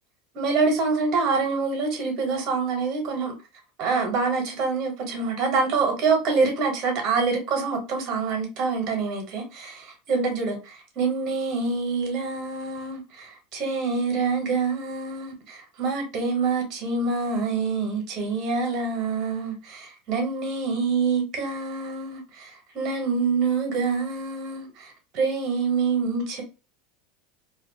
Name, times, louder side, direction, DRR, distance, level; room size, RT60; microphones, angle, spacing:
voice 1, 0.3-3.3 3.8-26.4, right 4 dB, 45° right, 1.0 m, -26 dB
2.3 x 2.2 x 2.7 m
hypercardioid pair, 90°, 0 cm